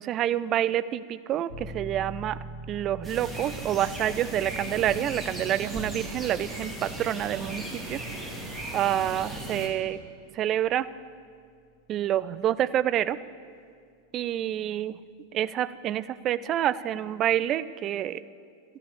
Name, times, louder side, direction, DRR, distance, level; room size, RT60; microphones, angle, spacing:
voice 1, 0.0-2.4 2.7-8.0 8.4-10.0 10.3-10.9 11.9-13.2 14.1-15.0 15.3-18.2, right 11 dB, 30° right, 16 dB, 0.4 m, -28 dB
sound 1, 1.5-12.0, right 2 dB, 80° left, 2.4 m, -46 dB
sound 2, 3.0-9.7, right 1 dB, 10° right, 2.3 m, -37 dB
12.5 x 9.9 x 7.1 m, 2.2 s
figure-of-eight pair, 90°, 0 cm